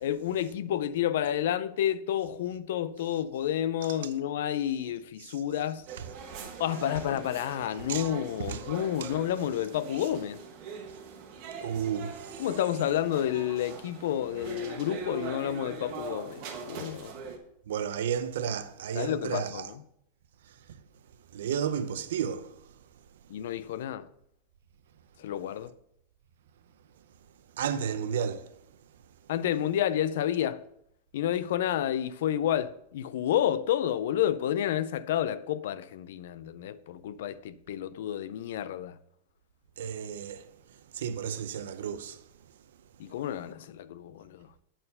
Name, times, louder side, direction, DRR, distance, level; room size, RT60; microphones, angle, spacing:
voice 1, 0.0-5.8 6.6-10.4 12.4-17.2 18.9-19.8 23.3-24.1 25.2-25.7 29.3-30.6 31.1-39.0 43.0-44.5, left 11 dB, 60° left, 0.4 m, -30 dB
sound 1, 5.9-17.4, right 5 dB, 40° right, 1.1 m, -42 dB
voice 2, 11.6-12.4 17.7-19.7 21.3-22.5 27.6-28.5 39.8-40.5 40.9-42.2, right 8 dB, 75° right, 0.6 m, -32 dB
8.8 x 4.4 x 5.4 m
supercardioid pair, 175°, 0 cm